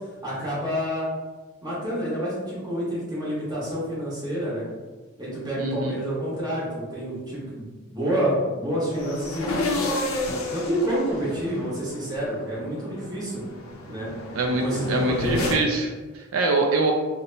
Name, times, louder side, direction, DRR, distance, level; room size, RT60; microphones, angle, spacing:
voice 1, 0.2-1.1 1.6-4.7 5.2-7.6 7.9-9.7 10.5-13.4 13.9-14.1 14.6-15.5, equal, 20° right, -7 dB, 1.1 m, -28 dB
voice 2, 5.6-5.9 14.4-16.9, right 3 dB, 70° right, 3 dB, 0.3 m, -24 dB
sound 1, 8.9-15.5, left 2 dB, 80° left, 0.5 m, -31 dB
2.8 x 2.1 x 3.9 m, 1.3 s
head